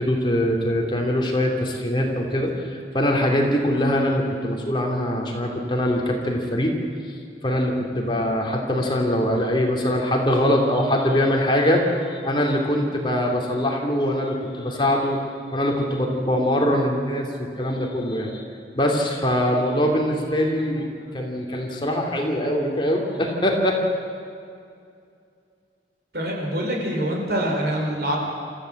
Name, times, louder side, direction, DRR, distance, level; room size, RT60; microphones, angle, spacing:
voice 1, 0.0-6.7 7.4-15.2 15.5-18.4 18.8-23.8, left 1 dB, 25° left, 0 dB, 2.8 m, -23 dB
voice 2, 26.1-28.2, right 1 dB, 60° right, 0 dB, 4.6 m, -25 dB
27.0 x 14.5 x 7.8 m, 2.4 s
head